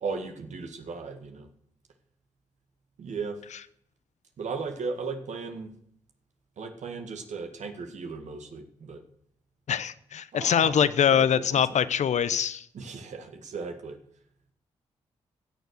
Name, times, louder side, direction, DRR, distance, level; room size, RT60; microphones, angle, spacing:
voice 1, 0.0-1.5 3.0-3.4 4.4-5.7 6.6-9.0 10.3-10.7 11.1-11.8 12.7-14.0, right 4 dB, 65° right, 6 dB, 1.9 m, -36 dB
voice 2, 9.7-12.7, left 8 dB, 65° left, 15 dB, 0.8 m, -23 dB
16.0 x 6.9 x 6.4 m, 0.68 s
supercardioid pair, 45°, 13 cm